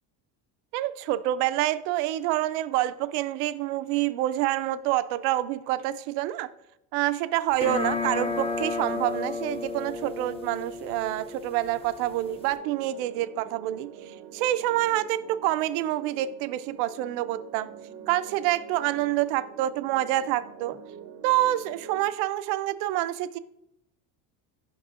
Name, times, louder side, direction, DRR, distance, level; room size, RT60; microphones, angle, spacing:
voice 1, 0.7-6.5 6.9-17.7 18.1-20.8 21.2-23.4, right 14 dB, 90° right, 0.6 m, -27 dB
sound 1, 7.5-12.6, left 4 dB, 15° left, 0.5 m, -33 dB
sound 2, 12.2-22.1, right 8 dB, 40° right, 0.6 m, -46 dB
9.0 x 5.4 x 2.4 m
cardioid pair, 115°, 46 cm